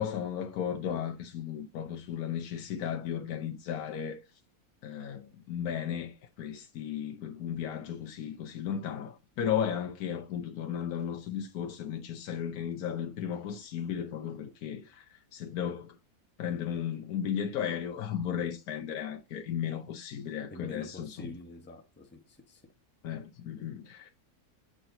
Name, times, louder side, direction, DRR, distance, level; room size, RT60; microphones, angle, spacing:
voice 1, 0.0-4.2 4.8-16.0 16.4-21.3 23.0-24.1, left 9 dB, 75° left, 1.2 m, -35 dB
voice 2, 20.5-22.7, left 1 dB, 10° left, 0.9 m, -47 dB
7.7 x 4.3 x 3.8 m
omnidirectional pair, 1.6 m